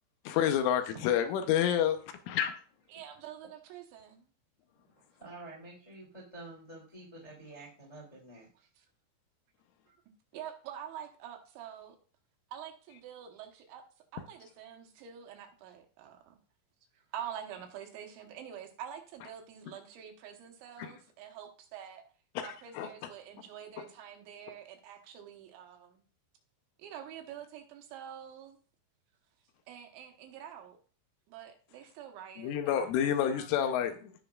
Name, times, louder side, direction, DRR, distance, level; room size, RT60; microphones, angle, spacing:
voice 1, 0.3-2.5 20.8-20.9 22.4-22.5 22.7-23.1 32.4-34.1, left 9 dB, 80° left, 3.2 m, -29 dB
voice 2, 2.9-4.3 8.8-8.9 9.9-10.0 10.3-12.0 12.5-13.8 14.1-16.4 16.9-22.0 22.4-26.0 26.8-28.6 29.7-30.8 31.3-33.4, right 9 dB, 75° right, 3.2 m, -46 dB
voice 3, 4.8-8.5, right 2 dB, 30° left, 0.5 m, -49 dB
16.5 x 5.7 x 2.4 m
omnidirectional pair, 5.8 m